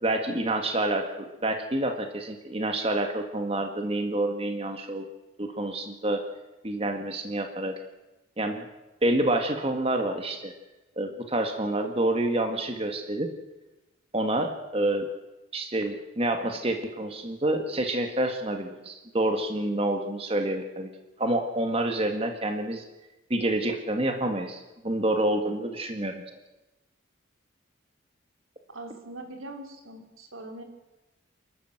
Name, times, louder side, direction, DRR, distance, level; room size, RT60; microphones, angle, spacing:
voice 1, 0.0-5.1 5.4-6.2 6.6-7.8 8.4-8.7 9.0-10.5 11.0-13.3 14.1-15.1 15.5-20.9 21.2-22.8 23.3-26.4, right 1 dB, 30° right, 5 dB, 1.8 m, -28 dB
voice 2, 28.7-30.6, right 2 dB, 90° right, 4 dB, 3.5 m, -42 dB
28.5 x 12.0 x 8.0 m, 1.0 s
head